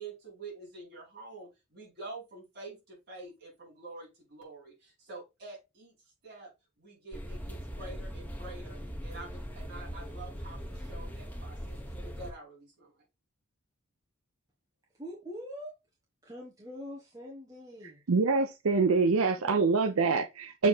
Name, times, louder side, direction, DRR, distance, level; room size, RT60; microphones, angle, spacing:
voice 1, 0.0-5.9 6.2-6.5 6.8-11.8 12.0-13.0, right 3 dB, 45° right, 4.7 m, -47 dB
sound 1, 7.1-12.3, equal, 10° left, 1.5 m, -40 dB
voice 2, 15.0-15.7 16.2-18.0 19.1-19.7, equal, 15° right, 1.3 m, -44 dB
voice 3, 18.1-20.7, right 4 dB, 75° right, 0.6 m, -25 dB
7.0 x 3.5 x 4.3 m
head